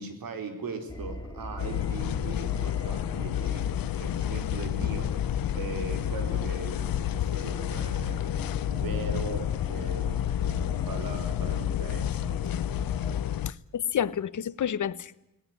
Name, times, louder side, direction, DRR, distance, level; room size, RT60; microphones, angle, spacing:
voice 1, 0.0-3.7 4.0-12.5, right 4 dB, 85° right, 4.7 m, -40 dB
sound 1, 0.9-13.2, left 1 dB, 10° left, 2.5 m, -41 dB
sound 2, 1.6-13.5, left 11 dB, 85° left, 0.8 m, -30 dB
voice 2, 13.5-15.1, left 9 dB, 60° left, 1.0 m, -30 dB
20.5 x 19.0 x 9.8 m
wide cardioid pair, 160°, 34 cm